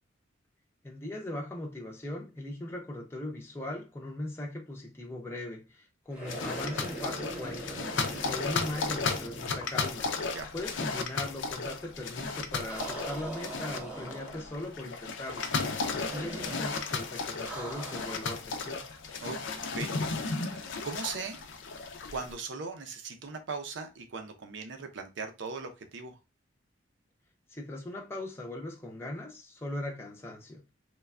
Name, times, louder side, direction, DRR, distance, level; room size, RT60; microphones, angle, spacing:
voice 1, 0.8-7.8 8.2-10.1 10.5-15.5 15.9-18.8 27.5-30.6, left 1 dB, 15° left, 0.5 m, -39 dB
sound 1, 6.1-10.3 10.5-10.6 12.6-14.7 16.1-16.8 17.4-18.3, right 2 dB, 5° right, 0.9 m, -42 dB
sound 2, 6.3-22.3, left 4 dB, 70° left, 0.5 m, -35 dB
voice 2, 20.4-21.4 22.1-26.2, right 4 dB, 70° right, 0.5 m, -39 dB
3.2 x 2.2 x 2.3 m
head